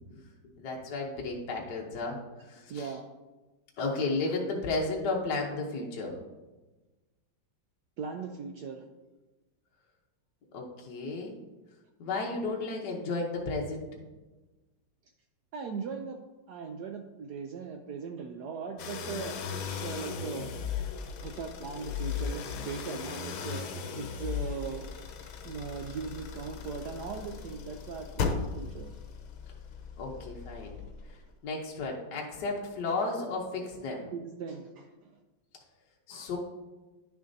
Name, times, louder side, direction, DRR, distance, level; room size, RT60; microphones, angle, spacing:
voice 1, 0.6-2.9 3.8-6.2 10.5-11.3 12.0-13.9 30.0-30.8 31.1-34.1 36.1-36.4, left 3 dB, 60° left, -2 dB, 1.4 m, -33 dB
voice 2, 2.7-3.0 8.0-8.8 15.5-16.2 16.5-20.5 21.2-23.6 24.0-24.9 25.4-28.9 34.1-35.1 36.1-36.3, right 5 dB, 75° right, 4 dB, 0.9 m, -39 dB
sound 1, 18.8-31.2, left 6 dB, 80° left, 1.5 m, -37 dB
10.5 x 6.8 x 2.6 m, 1.2 s
omnidirectional pair, 2.2 m